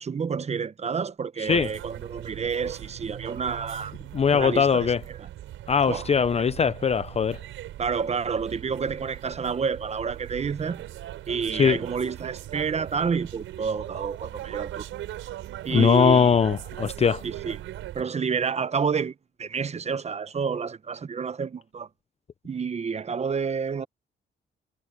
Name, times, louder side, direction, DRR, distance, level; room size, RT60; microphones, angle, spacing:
voice 1, 0.0-3.9 4.3-4.9 5.2-5.3 5.9-6.1 6.4-6.5 7.8-10.8 11.3-14.9 15.6-16.4 17.2-17.6 17.9-19.1 19.4-21.9 22.4-23.9, right 6 dB, 35° right, 0.9 m, -29 dB
sound 1, 1.5-18.0, right 13 dB, 85° right, 5.4 m, -40 dB
voice 2, 4.1-5.0 5.7-7.4 11.5-11.8 15.7-17.2, left 6 dB, 30° left, 0.6 m, -21 dB
cardioid pair, 90°, 20 cm